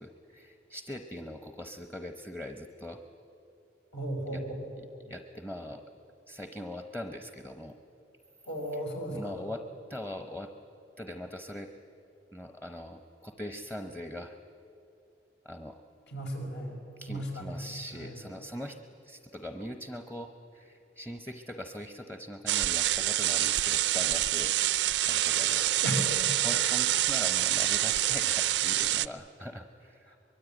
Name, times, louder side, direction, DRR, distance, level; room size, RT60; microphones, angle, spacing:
voice 1, 0.0-3.0 4.3-4.4 5.0-5.8 6.3-7.8 9.1-9.6 9.9-10.5 11.0-11.7 12.3-14.4 15.4-15.8 17.0-18.8 19.0-24.6 25.0-25.7 26.4-30.1, left 1 dB, 10° left, 6 dB, 0.8 m, -41 dB
voice 2, 3.9-4.6 8.4-9.3 16.1-16.7 17.1-17.6 18.0-18.2 25.8-26.3 30.1-30.2, equal, 75° left, 1 dB, 5.5 m, -35 dB
sound 1, 22.5-29.1, right 13 dB, 75° right, 0.5 m, -27 dB
24.0 x 22.0 x 9.2 m, 2.7 s
head